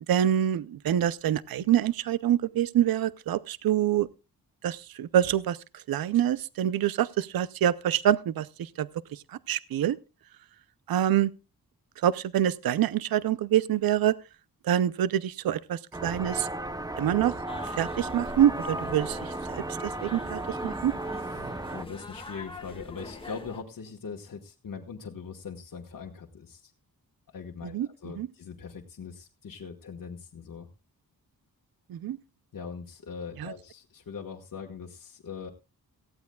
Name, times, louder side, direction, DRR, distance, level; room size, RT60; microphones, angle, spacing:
voice 1, 0.1-4.1 4.6-10.0 10.9-11.3 12.0-14.2 14.6-16.5 17.0-17.3 17.7-20.9 27.6-27.9 28.2-28.3 31.9-32.2 33.4-33.5, right 11 dB, 75° right, 0.6 m, -26 dB
sound 1, 15.9-21.8, right 2 dB, 10° right, 0.7 m, -35 dB
sound 2, 17.5-23.6, left 3 dB, 15° left, 1.6 m, -44 dB
voice 2, 21.2-26.7 27.3-30.7 32.5-35.5, left 6 dB, 60° left, 1.4 m, -41 dB
18.0 x 15.0 x 2.3 m
wide cardioid pair, 155°, 36 cm